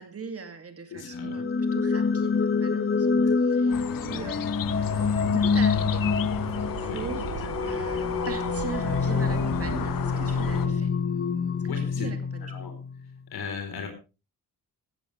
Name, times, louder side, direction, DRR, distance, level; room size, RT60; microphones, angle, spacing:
voice 1, 0.0-4.9 5.3-6.1 6.8-7.3 7.7-10.9 11.6-12.7, right 5 dB, 40° right, 7 dB, 2.5 m, -40 dB
voice 2, 0.9-1.3 3.1-3.2 3.7-4.2 6.8-7.0 7.6-7.9 11.7-12.1 12.4-12.7 13.3-13.9, left 6 dB, 85° left, 4 dB, 4.1 m, -38 dB
sound 1, 1.1-13.0, left 5 dB, 35° left, 1.1 m, -26 dB
sound 2, 3.7-10.7, left 12 dB, 65° left, 0.6 m, -36 dB
Subway metro underground, 4.6-10.7, right 6 dB, 80° right, 3.5 m, -37 dB
16.0 x 15.5 x 3.4 m, 0.30 s
wide cardioid pair, 135°, 36 cm